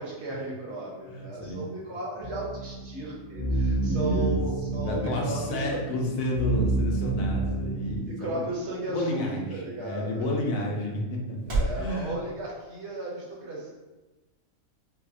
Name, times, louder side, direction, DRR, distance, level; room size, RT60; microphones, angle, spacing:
voice 1, 0.0-5.8 7.4-7.6 8.1-10.3 11.5-13.7, right 2 dB, 60° right, -5 dB, 1.2 m, -35 dB
voice 2, 1.1-1.6 3.6-4.4 4.7-8.5 8.9-11.4 11.7-12.1, left 1 dB, 90° left, 0 dB, 1.1 m, -31 dB
sound 1, 2.2-8.0, right 3 dB, 50° left, 1.3 m, -29 dB
sound 2, 5.6-11.9, right 2 dB, 85° right, 1.7 m, -38 dB
5.8 x 2.1 x 2.6 m, 1.1 s
omnidirectional pair, 1.4 m